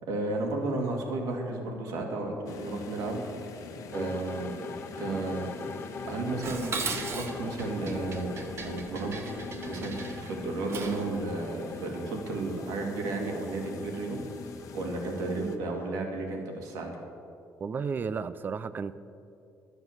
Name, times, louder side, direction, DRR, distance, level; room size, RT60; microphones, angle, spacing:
voice 1, 0.0-3.2 3.9-4.5 5.0-5.5 6.1-8.3 8.6-9.4 9.6-14.2 14.7-17.0, right 2 dB, 90° right, 1 dB, 2.2 m, -33 dB
sound 1, 2.4-15.6, left 4 dB, 70° left, 1.0 m, -43 dB
sound 2, 3.9-16.0, left 5 dB, 35° left, 0.6 m, -44 dB
Dishes pots and pans, 6.4-11.1, right 4 dB, 50° right, 1.4 m, -37 dB
voice 2, 17.6-18.9, right 5 dB, 35° right, 14 dB, 0.4 m, -33 dB
11.5 x 8.0 x 7.2 m, 2.5 s
cardioid pair, 115°, 6 cm